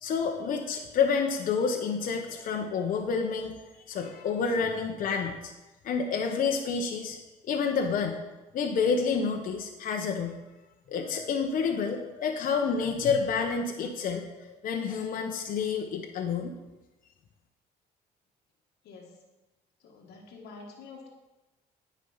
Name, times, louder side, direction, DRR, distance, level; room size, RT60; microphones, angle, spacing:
voice 1, 0.0-3.6 3.9-5.5 5.8-7.2 7.4-8.2 8.5-10.4 10.9-16.5, left 5 dB, 55° left, 2 dB, 1.0 m, -29 dB
voice 2, 18.8-19.2 19.8-21.1, left 4 dB, 75° left, -1 dB, 1.4 m, -47 dB
9.7 x 5.4 x 5.6 m, 1.1 s
cardioid pair, 110°, 17 cm